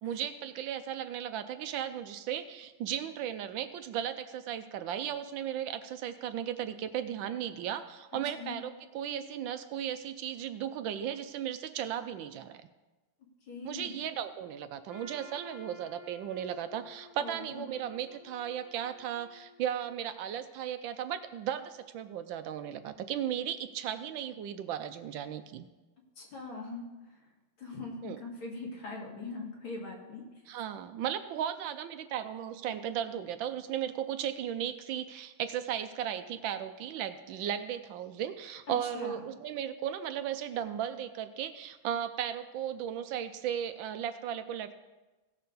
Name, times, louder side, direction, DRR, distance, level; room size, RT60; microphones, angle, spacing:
voice 1, 0.0-12.6 13.6-25.7 28.0-28.2 30.5-44.7, right 10 dB, 75° right, 10 dB, 1.2 m, -36 dB
voice 2, 13.5-14.0 17.2-17.7 26.2-27.2 27.6-30.2 38.7-39.2, left 3 dB, 70° left, -1 dB, 2.7 m, -42 dB
Trumpet, 14.9-20.0, left 2 dB, 40° right, 0.4 m, -54 dB
16.5 x 6.5 x 4.0 m, 1.2 s
omnidirectional pair, 2.3 m